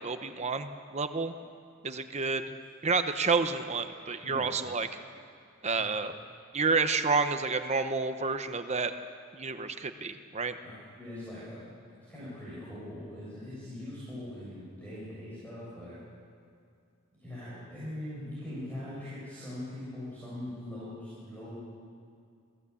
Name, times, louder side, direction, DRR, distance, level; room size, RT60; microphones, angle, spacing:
voice 1, 0.0-1.3 1.8-2.4 2.8-4.9 5.6-6.1 6.5-8.9 9.4-10.5, right 4 dB, 30° right, 8 dB, 0.9 m, -29 dB
voice 2, 10.6-11.6 12.0-16.0 17.2-21.5, left 1 dB, 10° left, -9 dB, 7.5 m, -41 dB
27.0 x 18.5 x 8.5 m, 2.3 s
head